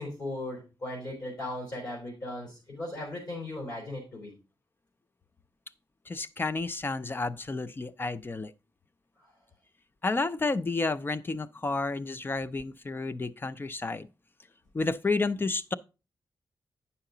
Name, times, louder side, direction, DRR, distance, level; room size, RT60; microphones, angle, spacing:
voice 1, 0.0-4.3 9.2-9.3, left 1 dB, 55° left, 3.6 m, -37 dB
voice 2, 6.1-8.5 10.0-14.1 14.7-15.7, left 3 dB, 25° left, 0.3 m, -31 dB
9.0 x 5.7 x 3.8 m
wide cardioid pair, 165°, 8 cm